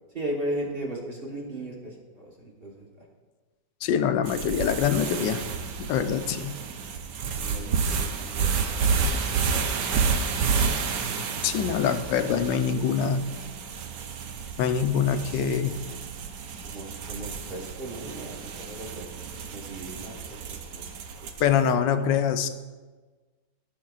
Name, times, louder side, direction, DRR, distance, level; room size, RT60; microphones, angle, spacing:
voice 1, 0.1-2.9 7.3-9.7 11.0-11.8 12.3-12.4 15.1-15.2 16.5-19.1 19.4-21.3 21.8-22.1, right 1 dB, 35° right, -3 dB, 1.3 m, -38 dB
voice 2, 3.8-5.4 5.8-6.6 11.4-13.3 14.6-15.7 21.4-22.5, left 8 dB, 85° left, 9 dB, 1.3 m, -24 dB
sound 1, 4.3-21.6, right 5 dB, 75° right, 1.3 m, -30 dB
14.5 x 6.5 x 2.4 m, 1.3 s
omnidirectional pair, 1.9 m